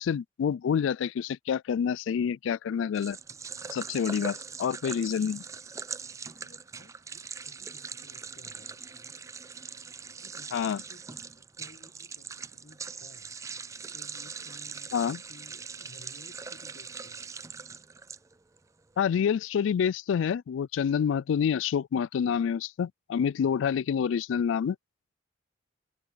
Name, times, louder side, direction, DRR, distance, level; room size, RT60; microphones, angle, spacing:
voice 1, 0.0-3.2 3.7-5.4 10.5-10.8 14.9-15.2 19.0-24.8, left 7 dB, 80° left, 0.3 m, -27 dB
sound 1, 2.9-18.6, right 5 dB, 15° right, 0.3 m, -41 dB
voice 2, 6.0-9.2 10.2-13.4 13.9-17.2, left 2 dB, 50° left, 1.4 m, -56 dB
head